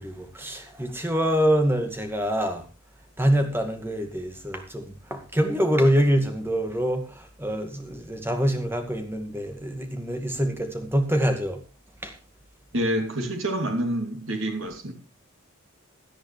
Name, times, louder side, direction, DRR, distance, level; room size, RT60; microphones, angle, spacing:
voice 1, 0.0-2.7 3.2-11.6 12.0-12.1, equal, 10° right, 2.1 m, -25 dB
voice 2, 12.7-14.9, right 1 dB, 65° right, 3.1 m, -27 dB
17.5 x 11.0 x 3.4 m
head